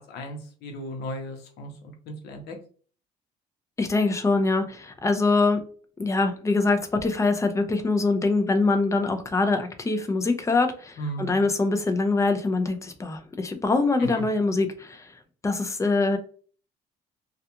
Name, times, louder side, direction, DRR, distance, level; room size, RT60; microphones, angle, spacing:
voice 1, 0.0-1.7 2.1-2.6 11.0-11.4 14.0-14.2, equal, 75° left, 3 dB, 0.8 m, -35 dB
voice 2, 3.8-5.6 6.0-15.2 15.4-16.2, left 3 dB, 20° left, 7 dB, 0.5 m, -24 dB
2.4 x 2.3 x 2.8 m, 0.42 s
cardioid pair, 110°, 17 cm